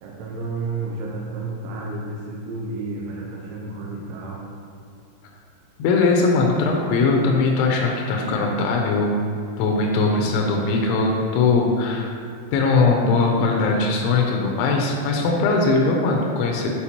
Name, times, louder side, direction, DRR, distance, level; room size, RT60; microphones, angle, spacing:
voice 1, 0.0-4.5, right 3 dB, 85° right, -3 dB, 3.1 m, -31 dB
voice 2, 5.8-9.3 9.6-12.1 12.5-16.7, left 3 dB, 80° left, 0 dB, 2.9 m, -20 dB
8.4 x 4.3 x 2.9 m, 2.3 s
omnidirectional pair, 5.5 m